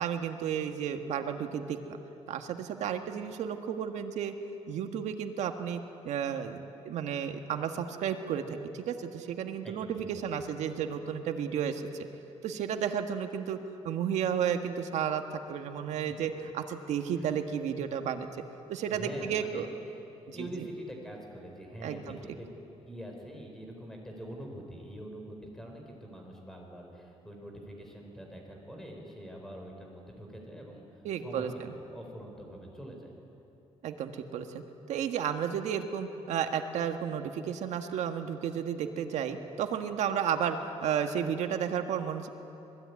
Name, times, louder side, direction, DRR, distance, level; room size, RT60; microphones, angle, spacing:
voice 1, 0.0-1.8 2.3-4.3 4.7-12.1 12.4-13.6 13.8-18.3 18.7-19.7 20.3-20.7 21.8-22.2 31.0-31.7 33.8-34.6 34.9-42.3, right 8 dB, 90° right, 6 dB, 1.7 m, -33 dB
voice 2, 9.6-10.3 17.1-17.4 18.9-20.0 20.3-22.4 22.9-33.1, equal, 5° left, 1 dB, 4.4 m, -45 dB
26.0 x 20.5 x 9.6 m, 2.9 s
cardioid pair, 160°, 11 cm